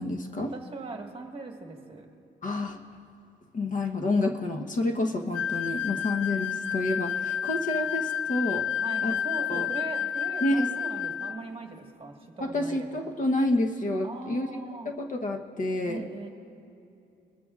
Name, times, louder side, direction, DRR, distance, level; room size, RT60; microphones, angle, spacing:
voice 1, 0.0-0.5 2.4-2.8 3.5-8.7 9.0-9.7 10.4-10.7 12.4-14.5 14.8-16.0, left 2 dB, 40° left, 4 dB, 1.0 m, -29 dB
voice 2, 0.5-2.1 8.7-13.1 14.0-14.9 15.8-16.3, right 3 dB, 25° right, 2 dB, 1.5 m, -40 dB
sound 1, 5.3-11.4, left 8 dB, 75° left, 0.4 m, -30 dB
23.5 x 12.5 x 2.4 m, 2.7 s
cardioid pair, 90°, 20 cm